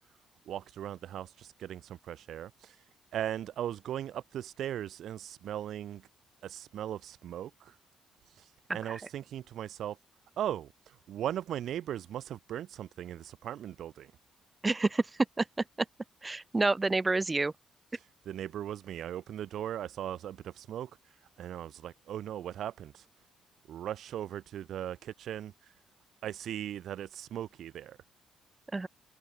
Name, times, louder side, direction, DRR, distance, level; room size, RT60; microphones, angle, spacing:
voice 1, 0.5-2.7 3.1-6.0 6.4-7.7 8.7-10.0 10.4-14.1 18.2-20.9 21.4-23.0 23.7-25.5 26.2-28.0, right 11 dB, 70° right, 1.2 m, -38 dB
voice 2, 14.6-15.0 15.4-15.5 16.2-17.5 28.7-28.9, right 3 dB, 20° right, 1.5 m, -28 dB
cardioid pair, 90°, 0 cm